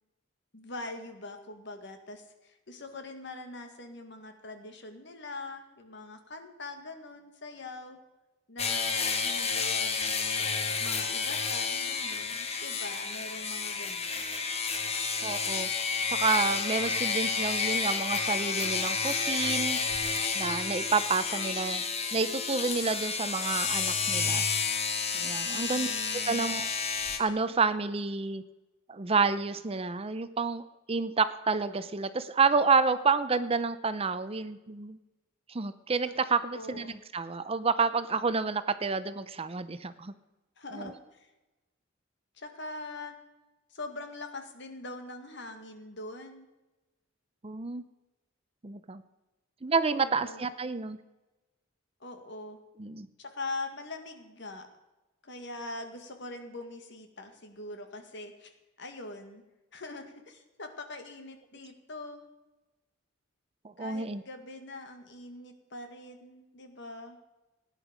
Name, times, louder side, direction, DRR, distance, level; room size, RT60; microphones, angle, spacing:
voice 1, 0.5-8.0 8.5-10.5 10.8-14.3 25.5-26.5 36.0-36.1 36.5-37.0 40.6-41.3 42.4-43.2 43.7-46.5 49.9-50.5 52.0-52.6 53.2-54.7 55.2-59.4 59.7-62.2 63.8-67.2, left 2 dB, 60° left, 6 dB, 1.9 m, -43 dB
sound 1, 8.6-27.2, left 5 dB, 30° left, 1.3 m, -30 dB
voice 2, 15.2-15.7 16.1-19.8 20.3-21.8 22.1-24.5 25.1-25.9 26.1-26.7 27.2-28.4 28.9-35.0 35.5-40.1 40.8-40.9 47.4-47.8 48.6-49.0 49.6-51.0 52.8-53.1 63.8-64.2, right 4 dB, 30° right, 13 dB, 0.6 m, -29 dB
17.0 x 10.0 x 5.2 m, 1.0 s
head